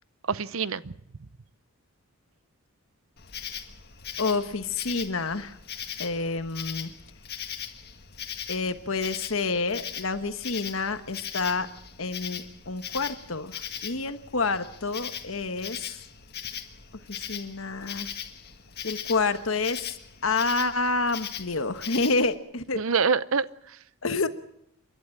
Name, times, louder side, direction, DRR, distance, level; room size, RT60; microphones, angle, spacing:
voice 1, 0.3-0.9 22.7-23.8, right 5 dB, 70° right, 17 dB, 0.7 m, -26 dB
Insect, 3.2-22.3, left 9 dB, 45° left, 1.7 m, -39 dB
voice 2, 4.2-5.6 6.0-6.9 8.5-11.7 12.0-16.0 17.1-18.1 18.8-19.8 20.2-22.8 24.0-24.3, left 3 dB, 65° left, 10 dB, 1.3 m, -28 dB
29.0 x 11.5 x 8.6 m, 0.75 s
head